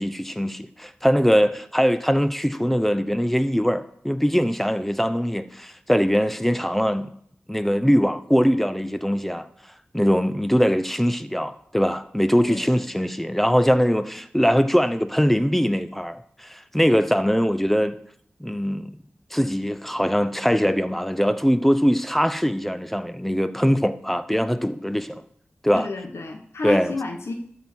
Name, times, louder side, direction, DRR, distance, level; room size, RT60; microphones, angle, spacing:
voice 1, 0.0-7.1 7.5-9.5 9.9-18.0 18.4-18.9 19.3-25.1 25.6-25.9 26.6-26.9, equal, 5° left, 0.7 m, -22 dB
voice 2, 12.4-12.8 25.7-27.3, left 3 dB, 80° left, 1.2 m, -30 dB
12.5 x 4.5 x 6.2 m
cardioid pair, 50°, 4 cm